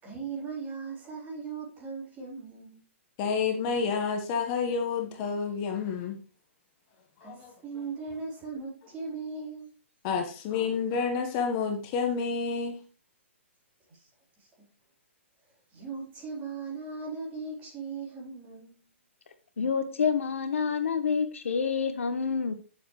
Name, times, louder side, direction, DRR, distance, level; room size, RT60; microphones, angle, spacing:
voice 1, 0.0-2.8 7.2-9.7 13.9-14.1 14.4-14.5 15.7-18.9, right 4 dB, 25° right, 4.0 m, -38 dB
voice 2, 3.2-6.1 7.2-7.5 10.0-12.8, left 5 dB, 35° left, 1.3 m, -29 dB
voice 3, 19.6-22.5, left 6 dB, 75° left, 1.2 m, -28 dB
9.4 x 7.1 x 3.2 m
hypercardioid pair, 130°, 7 cm